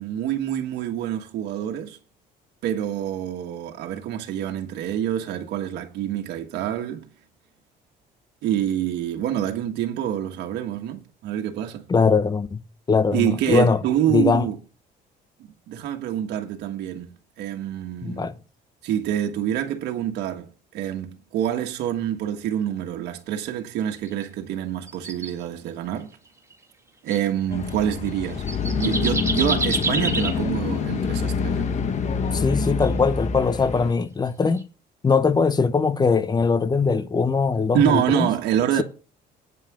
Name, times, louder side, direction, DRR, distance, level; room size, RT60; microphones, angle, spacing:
voice 1, 0.0-2.0 2.6-7.1 8.4-11.8 13.1-14.6 15.7-17.1 17.4-18.3 18.8-20.5 20.7-26.1 27.0-28.4 28.8-31.7 37.7-38.8, right 10 dB, 80° right, 1.5 m, -26 dB
voice 2, 11.9-12.6 12.9-13.8 14.1-14.5 18.0-18.3 32.3-34.7 35.0-38.3, left 5 dB, 25° left, 0.9 m, -21 dB
sound 1, 24.0-24.2 24.9-25.3 26.3-26.5 27.1-27.2 28.1-28.2 28.5-30.4 32.6-32.9 34.4-34.6, right 3 dB, 15° right, 1.9 m, -28 dB
sound 2, 27.5-33.9, left 5 dB, 45° left, 1.2 m, -26 dB
9.2 x 5.7 x 8.3 m
cardioid pair, 110°, 17 cm